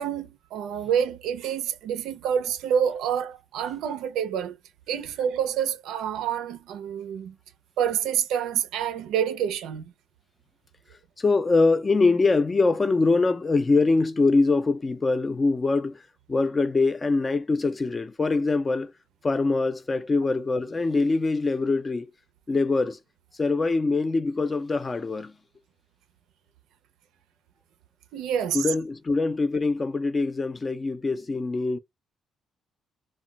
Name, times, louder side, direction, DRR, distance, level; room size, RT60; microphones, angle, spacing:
voice 1, 0.0-4.6 4.9-7.4 7.8-9.8 28.1-28.7, right 8 dB, 90° right, 0.4 m, -27 dB
voice 2, 11.2-16.0 16.3-18.9 19.2-22.1 22.5-23.0 23.4-25.3 28.5-31.8, left 3 dB, 30° left, 0.4 m, -23 dB
2.2 x 2.1 x 3.8 m
cardioid pair, 90°, 0 cm